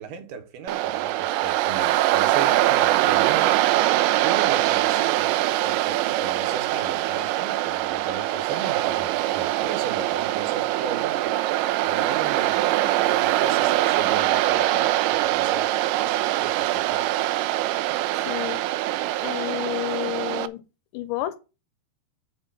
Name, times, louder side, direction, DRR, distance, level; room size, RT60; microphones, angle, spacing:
voice 1, 0.0-3.6 4.2-5.3 5.6-11.4 11.8-12.7 13.0-15.7 16.0-17.1, right 6 dB, 65° right, 2.3 m, -35 dB
Waves surf, 0.7-20.5, right 15 dB, 80° right, 2.7 m, -23 dB
voice 2, 18.1-18.6 19.2-20.6 20.9-21.4, left 16 dB, 85° left, 3.1 m, -30 dB
8.2 x 4.5 x 7.0 m
omnidirectional pair, 5.4 m